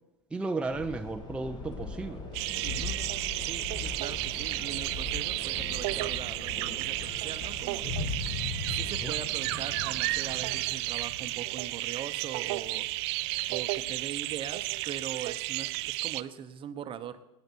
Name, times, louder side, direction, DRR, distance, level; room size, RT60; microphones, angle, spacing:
voice 1, 0.3-2.3 9.0-9.1, right 3 dB, 5° right, 5 dB, 0.6 m, -34 dB
sound 1, 0.7-10.6, left 3 dB, 30° left, 2.0 m, -41 dB
sound 2, 2.3-16.2, right 20 dB, 65° right, 0.4 m, -33 dB
voice 2, 2.6-3.0 3.4-12.9 13.5-17.2, right 9 dB, 35° right, 11 dB, 0.9 m, -41 dB
Thunder, 3.5-15.9, left 4 dB, 55° left, 4.5 m, -43 dB
18.5 x 9.5 x 4.5 m, 1.0 s
hypercardioid pair, 95°, 15 cm